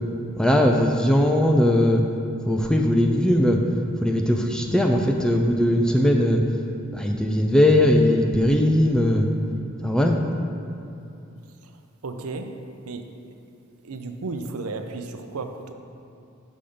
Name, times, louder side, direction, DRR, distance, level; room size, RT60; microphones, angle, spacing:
voice 1, 0.4-2.0 2.5-3.6 4.0-6.4 6.9-9.3 9.8-10.2, left 1 dB, 5° left, 2 dB, 0.4 m, -19 dB
voice 2, 12.0-12.5 12.8-13.3 13.8-15.7, right 3 dB, 90° right, 6 dB, 0.6 m, -33 dB
7.1 x 5.3 x 5.1 m, 2.7 s
head